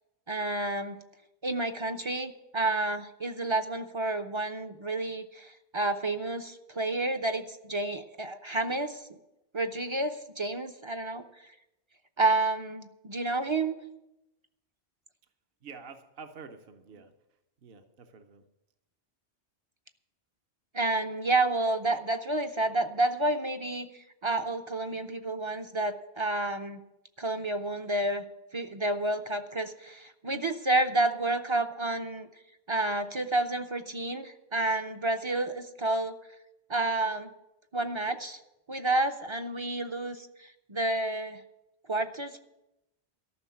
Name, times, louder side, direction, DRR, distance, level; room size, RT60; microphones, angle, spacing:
voice 1, 0.3-1.0 1.4-9.2 9.5-11.2 12.2-13.7 20.7-26.8 27.2-28.2 28.5-32.3 32.7-36.1 36.7-37.3 37.7-38.4 38.7-41.4 41.9-42.4, right 2 dB, 35° right, 7 dB, 0.5 m, -30 dB
voice 2, 15.6-17.1 17.6-18.4, right 5 dB, 60° right, 7 dB, 1.0 m, -48 dB
13.5 x 6.3 x 8.4 m, 0.92 s
omnidirectional pair, 1.1 m